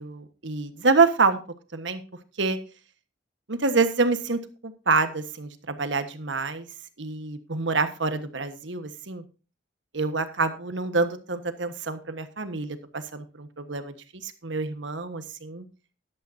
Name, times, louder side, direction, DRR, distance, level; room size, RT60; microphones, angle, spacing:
voice 1, 0.0-1.4 1.7-2.0 2.4-2.6 3.5-6.7 7.0-9.2 9.9-13.9 14.2-15.7, right 4 dB, 75° right, 9 dB, 1.4 m, -26 dB
14.0 x 11.5 x 2.7 m, 0.33 s
head